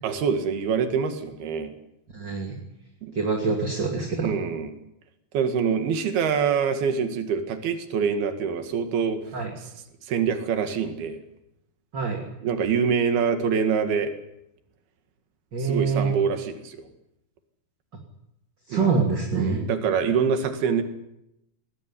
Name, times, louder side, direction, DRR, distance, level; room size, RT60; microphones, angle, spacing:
voice 1, 0.0-1.7 3.0-3.1 4.2-4.7 5.3-9.2 10.1-11.2 12.4-14.1 15.6-16.9 18.7-18.9 19.4-20.8, right 6 dB, 85° right, 7 dB, 4.0 m, -25 dB
voice 2, 2.1-2.6 3.1-4.3 9.3-9.5 11.9-12.3 15.5-16.2 18.7-19.7, right 4 dB, 30° right, 2 dB, 2.9 m, -25 dB
21.0 x 18.5 x 9.9 m, 0.84 s
omnidirectional pair, 4.3 m